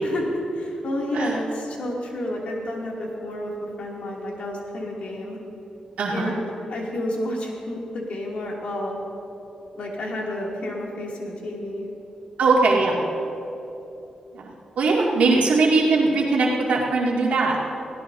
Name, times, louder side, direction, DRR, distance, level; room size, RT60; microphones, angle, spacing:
voice 1, 0.0-5.4 6.1-9.0 9.7-11.9, left 1 dB, 65° left, -3 dB, 2.8 m, -30 dB
voice 2, 6.0-6.3 12.4-13.0 14.3-14.5 14.8-17.6, right 3 dB, 85° right, -4 dB, 2.5 m, -20 dB
21.5 x 16.5 x 2.8 m, 2.9 s
wide cardioid pair, 140°, 2 cm